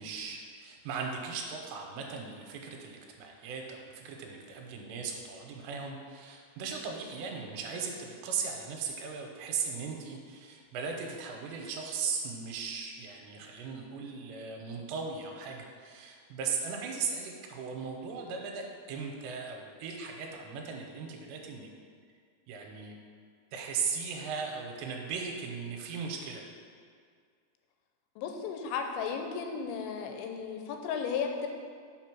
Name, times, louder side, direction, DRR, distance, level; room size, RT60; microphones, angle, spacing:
voice 1, 0.0-21.7 22.5-23.0 23.5-26.4, right 5 dB, 80° right, 1 dB, 2.9 m, -38 dB
voice 2, 28.2-31.5, left 6 dB, 90° left, 4 dB, 3.0 m, -34 dB
6.2 x 5.4 x 6.0 m, 2.1 s
omnidirectional pair, 5.2 m